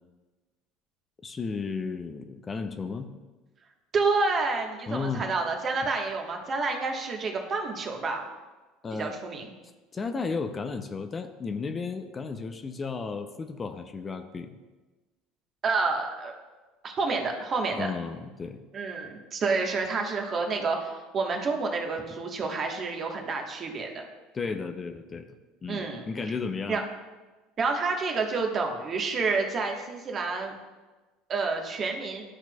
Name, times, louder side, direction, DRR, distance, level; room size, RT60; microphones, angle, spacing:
voice 1, 1.2-3.1 4.9-5.3 8.8-9.2 9.9-14.6 17.7-18.6 22.1-22.2 24.3-25.3 25.6-26.8, left 4 dB, 30° left, 8 dB, 0.6 m, -34 dB
voice 2, 3.9-8.2 8.9-9.5 15.6-16.3 16.8-17.9 18.7-24.1 25.7-26.1 26.7-26.8 27.6-30.5 31.3-32.2, right 4 dB, 40° right, 2 dB, 1.3 m, -29 dB
12.5 x 5.8 x 2.3 m, 1.2 s
hypercardioid pair, 70°, 0 cm